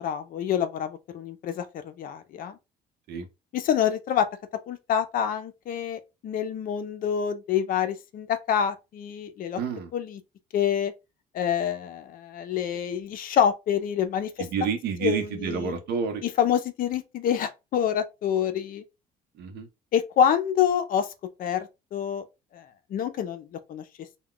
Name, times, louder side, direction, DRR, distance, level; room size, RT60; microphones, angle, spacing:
voice 1, 0.0-2.6 3.5-4.3 4.7-9.6 9.9-10.2 10.5-10.9 11.3-14.3 15.0-15.7 16.2-18.8 19.9-21.1 21.4-22.2 22.5-22.6 22.9-23.8, left 8 dB, 55° left, 0.5 m, -27 dB
voice 2, 9.6-9.9 14.4-16.2 19.4-19.7, right 6 dB, 70° right, 0.8 m, -29 dB
2.3 x 2.2 x 3.6 m
cardioid pair, 110°, 17 cm